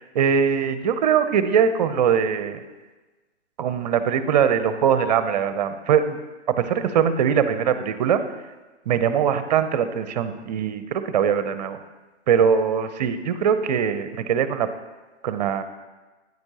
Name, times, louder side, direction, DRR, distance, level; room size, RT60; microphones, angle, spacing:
voice 1, 0.0-2.6 3.6-6.2 6.5-8.2 8.9-11.8 12.3-14.7 15.2-15.6, right 7 dB, 35° right, 11 dB, 0.6 m, -21 dB
9.5 x 8.9 x 2.9 m, 1.2 s
hypercardioid pair, 135°, 35 cm